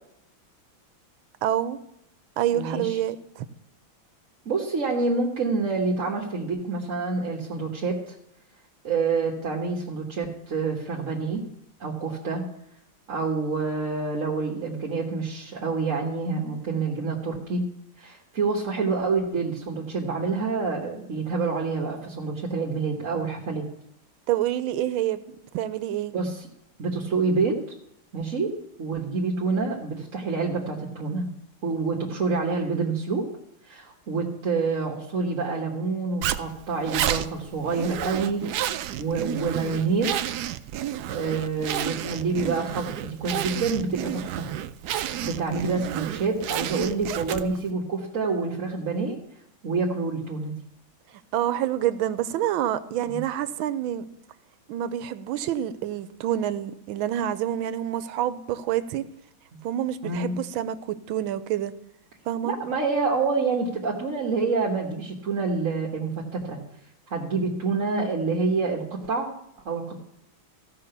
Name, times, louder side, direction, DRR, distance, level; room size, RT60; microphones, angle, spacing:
voice 1, 1.4-1.8 2.4-3.5 24.3-25.2 25.5-26.1 51.3-54.0 54.7-59.0 59.6-61.7 62.3-62.5, right 11 dB, 90° right, 14 dB, 1.5 m, -27 dB
voice 2, 2.5-3.0 4.4-8.1 8.8-11.4 11.8-12.4 13.1-17.6 18.0-23.7 26.1-26.5 26.8-27.6 28.1-28.5 28.8-31.3 31.6-33.2 33.6-40.1 41.1-44.5 45.2-49.2 49.6-50.5 53.0-53.2 60.0-60.3 62.4-66.6 67.1-69.3 69.6-70.0, right 4 dB, 45° right, 0 dB, 1.5 m, -27 dB
Zipper (clothing), 36.2-47.7, right 11 dB, 75° right, 1.0 m, -31 dB
15.0 x 5.7 x 6.8 m, 0.78 s
omnidirectional pair, 2.1 m